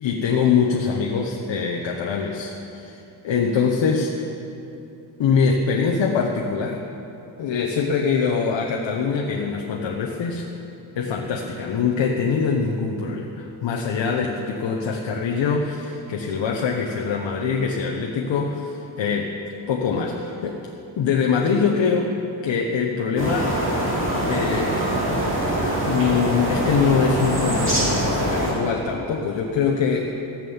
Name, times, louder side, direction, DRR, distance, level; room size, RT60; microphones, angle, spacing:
voice 1, 0.0-4.1 5.2-6.8 7.4-10.5 11.0-18.6 19.0-19.3 19.7-20.6 21.0-22.1 22.4-23.5 24.2-24.8 25.8-30.2, left 5 dB, 70° left, 1 dB, 1.0 m, -23 dB
sound 1, 23.2-28.5, right 1 dB, 25° right, 2.9 m, -23 dB
14.5 x 7.5 x 7.1 m, 2.9 s
wide cardioid pair, 180°, 45 cm